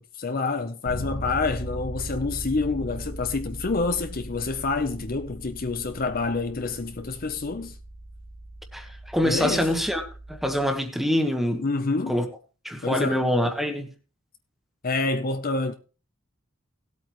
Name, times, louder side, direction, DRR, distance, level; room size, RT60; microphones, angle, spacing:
voice 1, 0.0-7.7 9.2-9.7 11.6-12.2 12.8-13.3 14.8-15.7, left 3 dB, 45° left, 0.8 m, -27 dB
Bass guitar, 0.9-10.7, right 1 dB, 70° left, 2.9 m, -39 dB
voice 2, 8.7-10.0 10.3-11.6 12.1-12.2 12.6-13.9, equal, ahead, 1.4 m, -25 dB
18.0 x 8.4 x 3.1 m
head